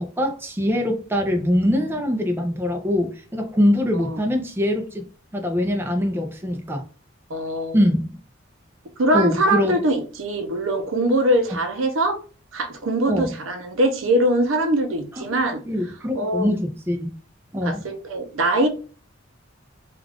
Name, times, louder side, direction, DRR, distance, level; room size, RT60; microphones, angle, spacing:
voice 1, 0.0-5.0 5.3-6.8 7.7-8.2 9.1-9.8 13.1-13.3 15.2-15.3 15.7-17.1 17.5-17.8, left 1 dB, 10° right, 0.5 m, -23 dB
voice 2, 7.3-7.8 9.0-12.2 12.5-15.6 16.1-16.5 17.6-18.7, right 1 dB, 85° right, 0.7 m, -22 dB
2.4 x 2.4 x 3.3 m
head